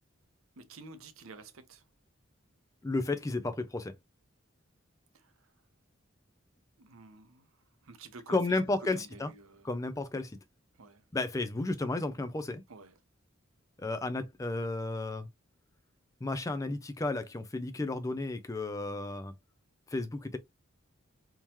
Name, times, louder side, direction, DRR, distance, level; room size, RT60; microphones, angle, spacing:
voice 1, 0.6-1.8 5.1-5.5 6.8-7.5 7.8-9.7 10.7-11.0 12.7-13.0, right 3 dB, 85° right, 0.7 m, -51 dB
voice 2, 2.8-3.9 8.3-9.3 9.6-10.4 11.1-12.6 13.8-15.3 16.2-19.3 19.9-20.4, left 2 dB, 15° left, 0.4 m, -33 dB
3.6 x 2.9 x 2.9 m
head